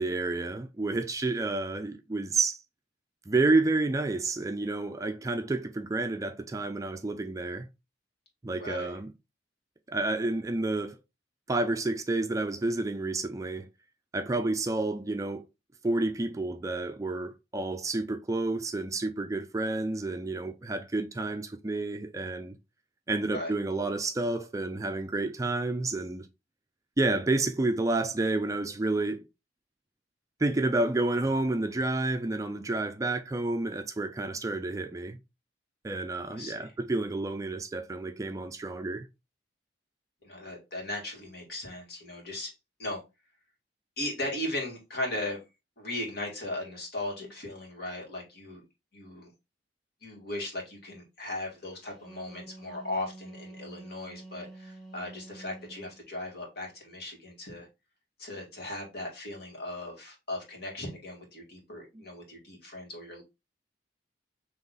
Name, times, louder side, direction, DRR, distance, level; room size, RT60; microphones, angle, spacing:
voice 1, 0.0-2.6 3.3-7.7 8.4-9.1 9.9-11.0 11.5-13.7 14.1-15.4 15.8-22.6 23.1-26.3 27.0-29.3 30.4-35.2 35.8-39.1 61.9-62.0, right 2 dB, 20° right, 0.3 m, -30 dB
voice 2, 8.6-8.9 23.3-23.5 36.3-36.7 40.2-42.5 42.8-43.0 44.0-45.4 45.8-48.6 48.9-49.3 50.0-57.7 58.2-63.2, left 1 dB, 60° left, 2.0 m, -37 dB
Wind instrument woodwind instrument, 51.8-56.0, right 2 dB, 35° left, 2.5 m, -47 dB
3.8 x 3.0 x 3.9 m
head